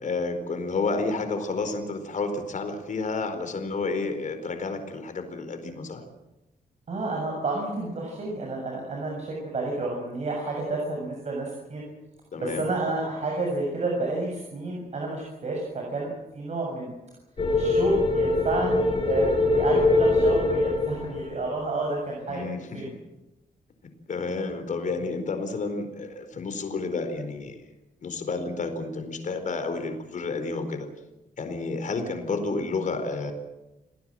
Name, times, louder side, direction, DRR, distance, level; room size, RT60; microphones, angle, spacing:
voice 1, 0.0-6.0 12.3-12.7 22.3-22.6 22.9-23.0 24.1-27.6 28.0-30.9 31.4-33.3, left 3 dB, 55° left, 7 dB, 4.4 m, -30 dB
voice 2, 6.9-11.8 12.4-16.9 17.5-22.5 22.7-22.9 31.9-32.2, right 2 dB, 45° right, 0 dB, 7.2 m, -30 dB
sound 1, 17.4-21.8, left 2 dB, 35° left, 5.2 m, -23 dB
29.0 x 18.5 x 7.8 m, 1.0 s
wide cardioid pair, 145°, 16 cm